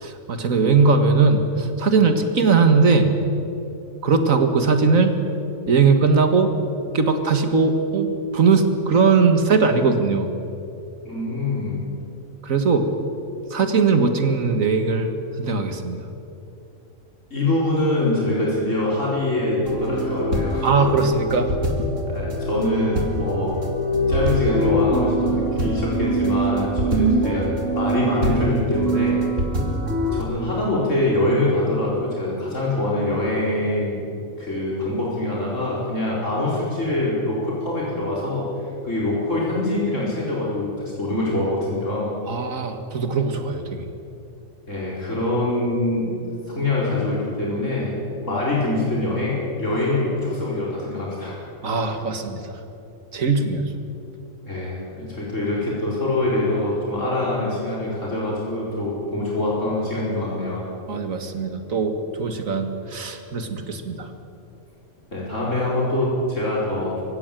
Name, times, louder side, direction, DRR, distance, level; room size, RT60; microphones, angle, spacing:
voice 1, 0.0-3.1 4.0-5.2 5.7-6.5 6.9-10.3 12.4-12.9 13.5-15.1 15.4-16.0 20.6-21.5 21.8-21.9 42.3-43.9 51.6-52.5 53.1-53.7 60.9-64.1, right 4 dB, 80° right, 7 dB, 2.1 m, -20 dB
voice 2, 11.0-11.8 17.3-20.7 22.1-23.6 24.1-27.5 27.7-29.2 30.1-34.0 34.4-38.4 38.8-40.7 41.0-42.1 44.7-46.1 46.5-51.3 54.4-60.6 65.1-67.0, left 2 dB, 65° left, -5 dB, 5.1 m, -24 dB
sound 1, 19.7-30.2, right 1 dB, 65° right, 3.1 m, -23 dB
23.5 x 16.0 x 9.1 m, 2.7 s
omnidirectional pair, 1.4 m